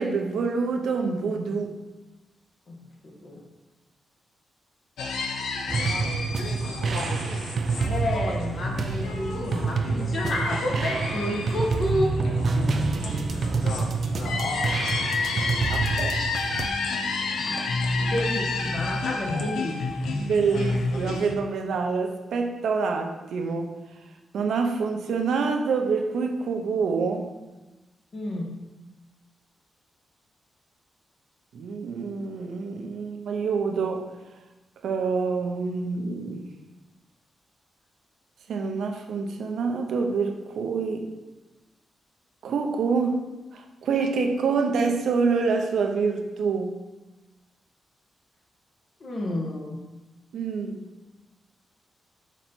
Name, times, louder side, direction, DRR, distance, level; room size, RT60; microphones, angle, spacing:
voice 1, 0.0-1.7 15.7-16.2 20.2-23.7 24.3-27.3 31.5-34.1 34.8-36.4 38.5-41.1 42.4-43.3 43.5-46.7 50.3-50.9, right 4 dB, 80° right, 4 dB, 0.7 m, -26 dB
voice 2, 3.0-3.4 7.8-12.2 12.6-13.1 13.7-14.3 17.5-17.6 18.0-19.8 28.1-28.5 49.0-49.8, left 1 dB, 50° left, 0 dB, 1.3 m, -30 dB
sound 1, 5.0-21.3, left 3 dB, 85° left, 0.7 m, -30 dB
sound 2, 5.7-16.7, right 4 dB, 55° right, 0.4 m, -28 dB
6.2 x 4.0 x 4.3 m, 1.1 s
cardioid pair, 95°, 0 cm